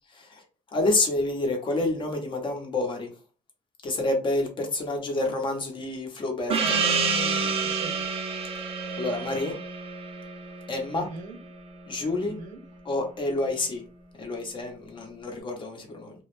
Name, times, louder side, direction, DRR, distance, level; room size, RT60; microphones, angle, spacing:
voice 1, 0.7-3.1 3.8-6.8 9.0-9.6 10.7-11.1 11.9-12.4 12.8-13.8 14.2-16.1, left 2 dB, 40° left, 0.8 m, -28 dB
Gong, 6.5-11.6, right 5 dB, 50° right, 0.5 m, -28 dB
voice 2, 6.6-8.0 10.9-11.4 12.2-12.6, right 3 dB, 80° right, 0.8 m, -39 dB
2.3 x 2.0 x 3.1 m
cardioid pair, 115°, 13 cm